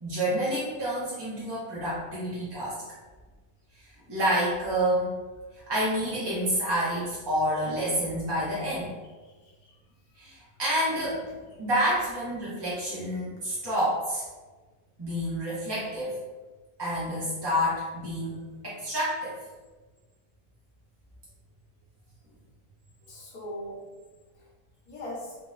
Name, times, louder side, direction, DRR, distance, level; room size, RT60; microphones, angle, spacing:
voice 1, 0.0-2.8 3.7-5.2 5.5-8.9 10.2-14.2 15.0-16.2 16.8-18.4 18.6-19.4, equal, 30° right, -9 dB, 0.4 m, -28 dB
voice 2, 9.2-9.7 23.0-23.8 24.3-24.5 24.9-25.4, left 1 dB, 85° left, -4 dB, 1.2 m, -40 dB
3.6 x 2.0 x 2.4 m, 1.3 s
omnidirectional pair, 1.5 m